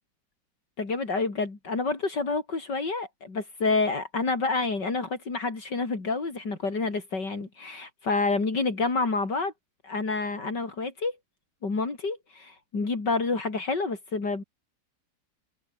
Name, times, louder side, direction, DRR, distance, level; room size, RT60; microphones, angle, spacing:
voice 1, 0.8-9.5 9.8-11.2 11.6-14.4, left 3 dB, 75° left, 4.8 m, -28 dB
omnidirectional pair, 1.9 m